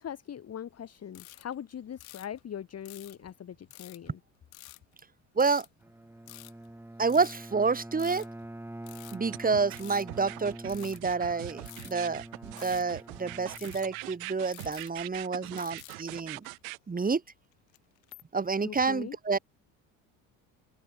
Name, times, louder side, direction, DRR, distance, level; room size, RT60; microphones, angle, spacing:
voice 1, 0.0-4.2 12.2-12.3 18.6-19.2, left 9 dB, 40° left, 1.5 m, -41 dB
sound 1, 1.1-1.5 2.0-2.4 2.9-3.3 3.7-4.1 4.5-4.8 5.4-5.7 6.3-6.7 7.1-7.5 7.9-8.4 8.9-10.4 10.7-11.0 11.6-12.1 12.6-13.0 13.5-14.0 14.5-15.3 15.6-16.0 16.3-16.6 17.5-18.2, left 20 dB, 90° left, 4.4 m, -49 dB
voice 2, 5.4-5.7 7.0-8.2 9.1-16.5 16.9-17.2 18.3-19.4, right 4 dB, 20° right, 1.9 m, -29 dB
Bowed string instrument, 5.8-14.3, right 1 dB, 5° right, 2.9 m, -46 dB
sound 2, 9.3-16.8, right 27 dB, 85° right, 3.7 m, -42 dB
supercardioid pair, 75°, 40 cm